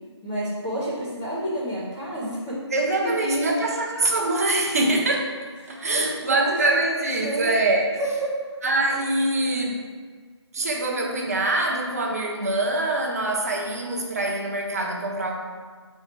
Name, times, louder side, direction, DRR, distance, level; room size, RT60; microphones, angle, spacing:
voice 1, 0.2-3.6 5.6-7.5 8.0-8.4 10.7-10.8, right 1 dB, 5° left, -11 dB, 0.5 m, -30 dB
voice 2, 2.7-5.3 5.7-7.9 8.6-9.8 10.5-15.3, right 2 dB, 35° right, -1 dB, 0.8 m, -24 dB
4.7 x 4.5 x 4.6 m, 1.5 s
figure-of-eight pair, 155°, 15 cm